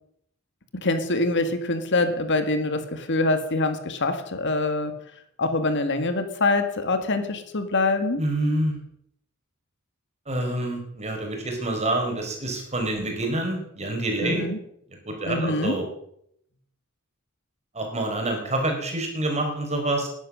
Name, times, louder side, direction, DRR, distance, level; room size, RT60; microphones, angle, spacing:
voice 1, 0.7-5.0 5.4-8.2 14.2-14.6 15.2-15.8, left 2 dB, 55° left, 8 dB, 1.9 m, -24 dB
voice 2, 8.2-8.8 10.3-14.5 15.1-15.8 17.7-20.1, right 1 dB, 30° right, 3 dB, 4.6 m, -27 dB
19.5 x 11.0 x 6.3 m, 0.72 s
head